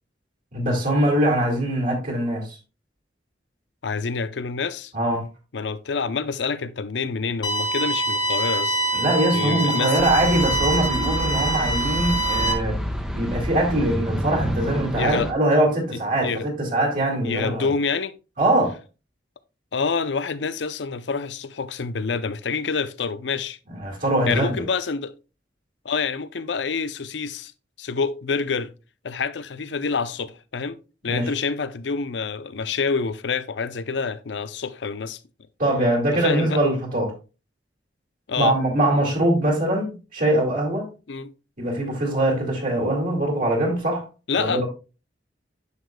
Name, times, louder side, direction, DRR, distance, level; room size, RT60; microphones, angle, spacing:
voice 1, 0.5-2.5 4.9-5.2 8.9-12.8 13.1-17.7 18.4-18.7 23.7-24.6 31.1-31.3 35.6-37.1 38.4-40.9 41.6-44.0 44.4-44.7, right 1 dB, 50° right, 2.3 m, -22 dB
voice 2, 3.8-4.9 5.5-8.8 9.3-10.1 15.0-15.3 16.2-16.5 17.2-18.2 19.7-23.6 24.2-25.1 25.8-27.5 27.8-28.7 29.0-30.8 31.0-35.2 36.1-36.6 38.3-38.6 41.1-41.3 44.3-44.6, left 5 dB, 75° left, 0.6 m, -27 dB
sound 1, 7.4-12.5, right 2 dB, 25° left, 1.2 m, -25 dB
sound 2, 10.0-15.3, equal, 5° right, 0.9 m, -29 dB
9.6 x 6.5 x 2.3 m
head